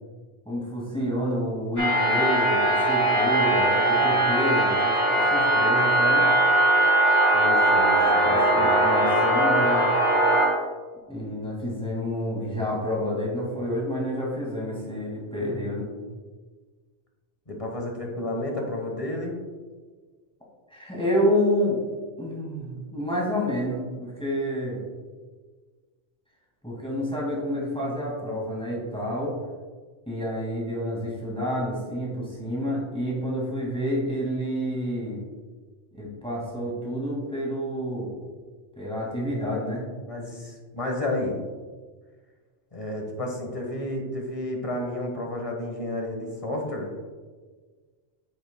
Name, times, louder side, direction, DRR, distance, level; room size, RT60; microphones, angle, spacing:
voice 1, 0.5-6.3 8.0-9.9 11.1-15.9 20.7-21.8 22.2-24.8 26.6-29.3 30.1-35.2 35.9-38.1 38.8-39.9, equal, 5° left, -4 dB, 2.0 m, -29 dB
sound 1, 1.8-10.5, right 1 dB, 85° left, 2.2 m, -20 dB
voice 2, 7.3-8.8 17.5-19.4 40.1-41.4 42.7-46.9, left 1 dB, 30° left, 1 dB, 1.3 m, -31 dB
8.8 x 7.1 x 2.2 m, 1.4 s
omnidirectional pair, 1.2 m